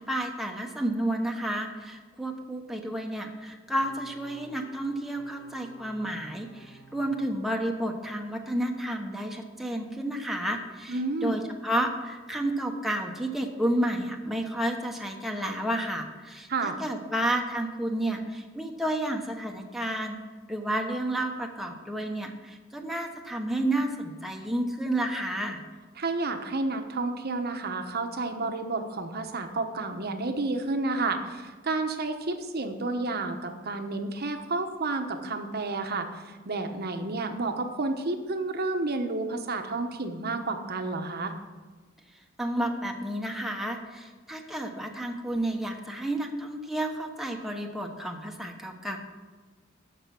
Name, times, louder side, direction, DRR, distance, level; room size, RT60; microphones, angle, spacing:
voice 1, 0.1-20.2 20.5-25.6 42.4-49.0, right 1 dB, ahead, 2 dB, 1.1 m, -31 dB
sound 1, 3.6-8.1, right 2 dB, 75° left, 3.5 m, -54 dB
voice 2, 10.9-11.3 16.5-16.8 26.0-41.3, right 3 dB, 50° right, 6 dB, 1.1 m, -30 dB
14.0 x 6.0 x 6.0 m, 1.4 s
head